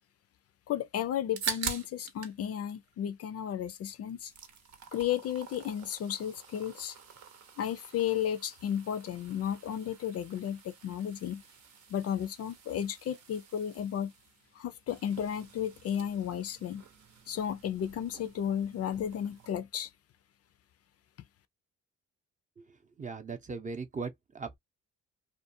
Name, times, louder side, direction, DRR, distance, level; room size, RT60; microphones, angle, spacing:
voice 1, 0.7-4.3 4.9-7.0 7.6-11.4 11.9-14.1 14.5-16.8 17.3-19.9, left 9 dB, 55° left, 0.4 m, -33 dB
sound 1, 1.1-2.4 2.7-3.7 4.0-19.5, right 7 dB, 65° right, 0.8 m, -45 dB
voice 2, 23.0-24.6, right 4 dB, 25° right, 0.6 m, -38 dB
2.4 x 2.2 x 2.6 m
cardioid pair, 90°, 30 cm